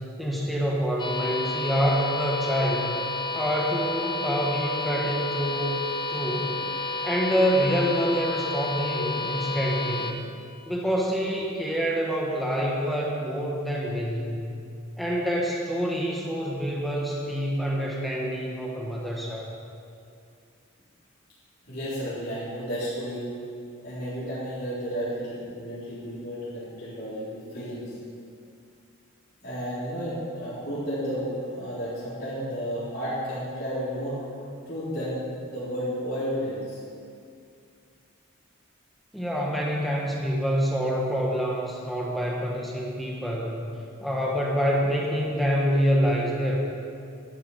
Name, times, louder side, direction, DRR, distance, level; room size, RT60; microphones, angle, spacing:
voice 1, 0.2-2.9 3.3-5.8 6.1-6.6 7.0-10.1 10.7-14.4 15.0-19.5 39.1-43.6 44.0-46.6, equal, ahead, -3 dB, 1.4 m, -26 dB
sound 1, 1.0-10.1, left 3 dB, 20° left, 0.8 m, -31 dB
voice 2, 21.7-23.3 23.8-27.9 29.4-34.2 34.6-36.8, equal, 50° left, -11 dB, 3.9 m, -32 dB
12.0 x 11.5 x 5.6 m, 2.4 s
head